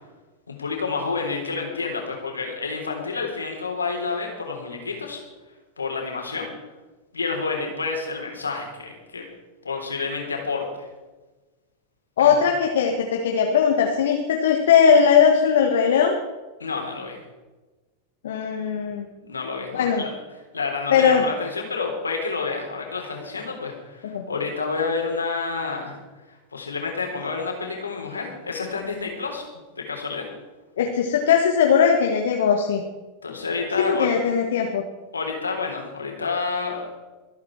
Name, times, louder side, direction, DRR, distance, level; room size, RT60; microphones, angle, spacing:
voice 1, 0.5-5.2 5.8-6.5 7.1-9.2 9.6-10.9 12.2-12.4 16.6-17.2 19.2-26.0 26.3-29.5 29.8-30.3 33.2-34.1 35.1-37.0, left 4 dB, 75° left, 2 dB, 3.5 m, -29 dB
voice 2, 12.2-16.1 18.2-19.0 19.7-20.0 20.9-21.2 24.1-24.2 30.8-32.8 33.7-34.8, left 7 dB, 60° left, 2 dB, 1.5 m, -19 dB
24.5 x 8.6 x 4.6 m, 1.2 s
figure-of-eight pair, 90°, 0 cm